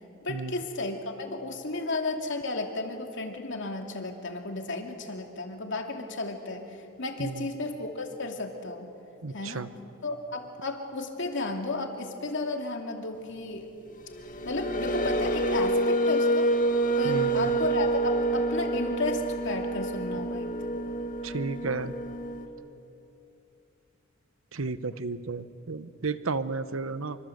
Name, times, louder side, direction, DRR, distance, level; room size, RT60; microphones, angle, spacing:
voice 1, 0.2-8.9 9.3-9.7 10.0-13.7 14.4-16.5 17.0-20.8, left 2 dB, 60° left, 3 dB, 2.7 m, -33 dB
voice 2, 9.2-9.7 17.0-17.5 21.2-21.9 24.5-27.2, right 3 dB, 75° right, 13 dB, 1.0 m, -32 dB
sound 1, 14.0-22.5, right 2 dB, 40° left, 2.2 m, -27 dB
26.0 x 25.5 x 7.9 m, 2.8 s
head